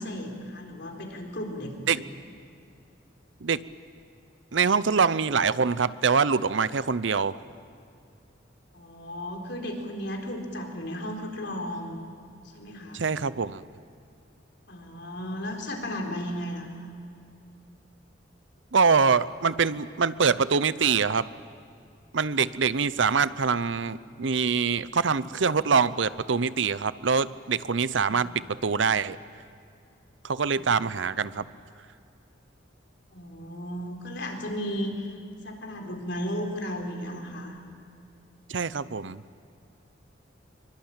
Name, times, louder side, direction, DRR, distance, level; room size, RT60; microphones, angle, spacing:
voice 1, 0.0-2.1 8.7-12.0 12.5-13.0 14.7-16.9 28.0-28.3 30.5-30.8 33.1-35.1 35.4-37.6, equal, 60° left, 2 dB, 4.3 m, -35 dB
voice 2, 4.5-7.4 12.9-13.6 18.7-21.3 22.1-29.2 30.2-31.5 38.5-39.2, right 5 dB, 70° right, 16 dB, 0.7 m, -24 dB
24.5 x 23.5 x 8.9 m, 2.5 s
head